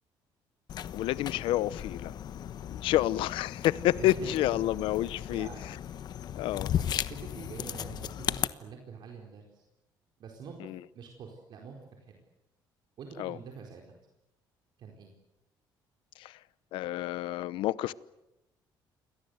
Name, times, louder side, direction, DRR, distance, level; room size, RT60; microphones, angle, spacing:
sound 1, 0.7-8.5, left 10 dB, 55° left, 1.1 m, -36 dB
voice 1, 0.9-2.1 2.7-5.5 6.4-6.7 10.6-10.8 13.2-13.4 16.2-16.3 16.7-17.9, left 14 dB, 90° left, 18 dB, 0.9 m, -29 dB
voice 2, 3.9-4.4 5.0-5.6 6.5-6.8 7.1-9.6 10.2-12.2 13.0-14.1 14.8-15.1, right 6 dB, 60° right, 2 dB, 4.5 m, -46 dB
28.5 x 23.0 x 8.1 m, 0.93 s
cardioid pair, 130°, 9 cm